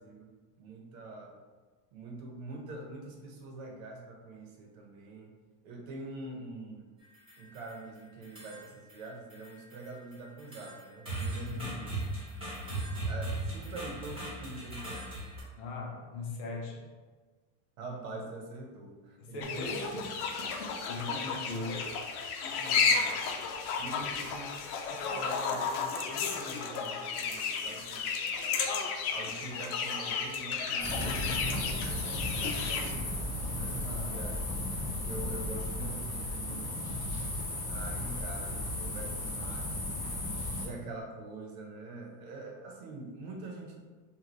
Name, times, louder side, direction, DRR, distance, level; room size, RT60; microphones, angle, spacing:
voice 1, 0.0-1.4 1.9-5.3 5.6-6.9 7.4-12.2 13.0-15.1 17.8-19.7 20.9-21.3 21.6-21.8 22.4-23.2 23.8-24.6 24.9-28.7 29.1-34.4 35.0-37.0 37.7-40.0 40.6-43.8, right 2 dB, 70° right, 1 dB, 1.0 m, -45 dB
sound 1, 7.0-7.8 8.2-9.0 9.3-15.4, right 2 dB, 15° right, 1.1 m, -38 dB
voice 2, 11.4-11.9 15.6-16.9 19.2-20.1 20.6-21.8 33.8-34.3, left 2 dB, 45° left, -1 dB, 0.8 m, -39 dB
sound 2, 19.4-32.9, left 5 dB, 85° left, 0.7 m, -33 dB
sound 3, 30.8-40.7, left 1 dB, 20° left, 1.0 m, -35 dB
5.1 x 2.5 x 3.0 m, 1.4 s
supercardioid pair, 175°, 43 cm